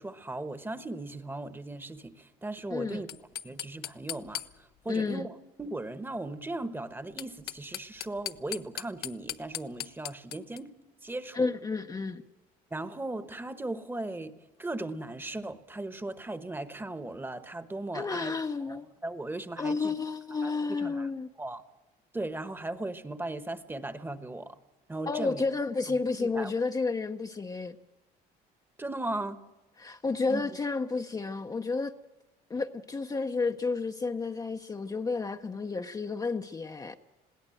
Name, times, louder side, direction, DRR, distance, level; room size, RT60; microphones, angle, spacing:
voice 1, 0.0-3.1 3.4-4.4 4.8-10.7 11.0-11.5 12.7-19.9 20.4-21.1 21.4-21.6 22.1-24.6 24.9-25.4 26.2-26.5 28.8-29.4 30.3-30.5, right 2 dB, 10° right, 1.1 m, -37 dB
voice 2, 2.7-3.0 4.9-5.3 11.3-12.2 17.9-18.9 19.6-21.3 25.1-27.8 29.8-31.9 32.5-37.0, left 4 dB, 20° left, 0.7 m, -31 dB
sound 1, 3.1-4.9 7.0-10.6, left 12 dB, 70° left, 0.7 m, -39 dB
21.0 x 16.5 x 7.7 m
cardioid pair, 110°, 17 cm